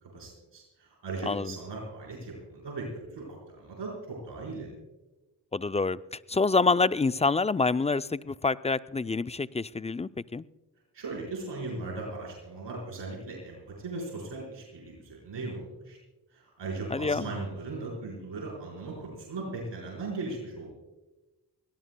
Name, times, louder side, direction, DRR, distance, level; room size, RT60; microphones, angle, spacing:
voice 1, 0.0-4.7 10.9-16.0 16.3-20.7, right 3 dB, 85° right, -3 dB, 4.8 m, -38 dB
voice 2, 5.5-6.0 6.3-10.4 16.9-17.3, left 3 dB, 15° left, 15 dB, 0.4 m, -27 dB
24.0 x 18.0 x 2.2 m, 1.1 s
cardioid pair, 45°, 42 cm